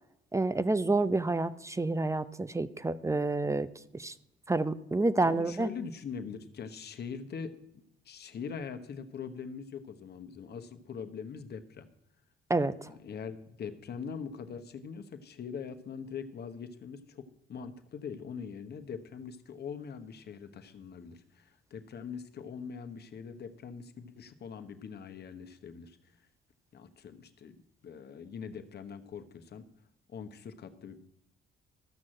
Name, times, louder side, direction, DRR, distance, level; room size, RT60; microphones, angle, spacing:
voice 1, 0.3-3.7 3.9-4.1 4.5-5.7 12.5-12.9, right 2 dB, 15° right, 15 dB, 0.6 m, -29 dB
voice 2, 5.2-7.6 8.0-11.9 12.9-26.2 26.7-27.6 27.8-29.6 30.1-31.0, left 6 dB, 55° left, 8 dB, 1.1 m, -42 dB
13.5 x 6.3 x 7.5 m, 0.81 s
cardioid pair, 90°, 20 cm